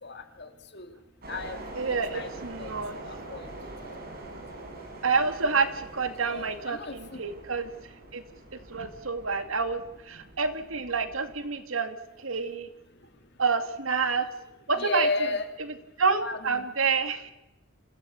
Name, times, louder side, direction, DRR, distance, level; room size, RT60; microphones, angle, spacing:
voice 1, 0.0-0.9 1.3-2.3 2.6-2.7 3.1-3.4 6.2-7.2 14.8-15.5 16.2-16.7, left 3 dB, 55° left, 7 dB, 2.7 m, -34 dB
sound 1, 1.2-11.4, right 2 dB, 45° right, 6.1 m, -44 dB
voice 2, 1.7-3.0 5.0-7.7 8.1-8.2 8.7-12.7 13.4-14.3 14.7-15.3 15.6-17.3, right 4 dB, 85° right, 9 dB, 2.3 m, -28 dB
26.5 x 16.5 x 8.5 m, 0.96 s
head